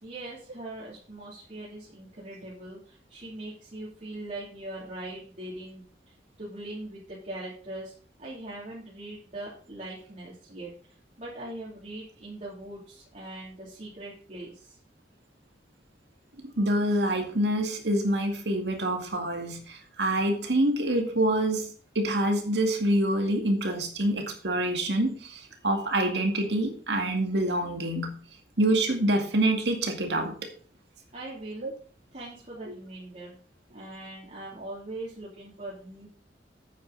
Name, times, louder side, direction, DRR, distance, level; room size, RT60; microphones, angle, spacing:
voice 1, 0.0-7.9 8.2-10.7 11.2-14.7 31.1-31.7 32.1-33.3 33.7-36.1, right 1 dB, 40° right, -7 dB, 3.0 m, -41 dB
voice 2, 16.6-21.7 22.0-28.2 28.6-30.3 31.6-31.7, right 1 dB, 75° right, 4 dB, 2.2 m, -26 dB
9.2 x 8.8 x 4.0 m, 0.42 s
head